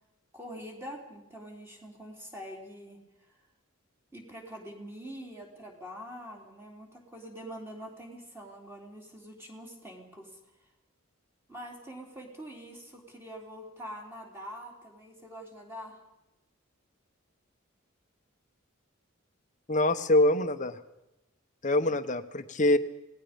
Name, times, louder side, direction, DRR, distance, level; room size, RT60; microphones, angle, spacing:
voice 1, 0.3-3.0 4.1-10.4 11.5-16.0, equal, 10° right, -1 dB, 3.7 m, -44 dB
voice 2, 19.7-20.8 21.6-22.8, left 1 dB, 35° left, 10 dB, 1.1 m, -24 dB
27.5 x 19.0 x 5.3 m, 0.92 s
head